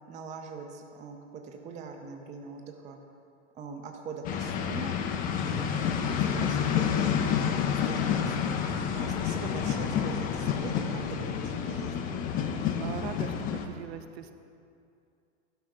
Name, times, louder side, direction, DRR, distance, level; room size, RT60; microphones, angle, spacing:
voice 1, 0.1-3.0 3.6-4.9 5.3-7.5 7.9-12.1, right 4 dB, 20° right, 3 dB, 0.6 m, -42 dB
sound 1, 4.2-13.7, left 7 dB, 25° left, 0.5 m, -29 dB
voice 2, 12.8-14.3, right 9 dB, 60° right, 10 dB, 0.6 m, -40 dB
11.5 x 4.3 x 4.9 m, 2.5 s
figure-of-eight pair, 100°, 36 cm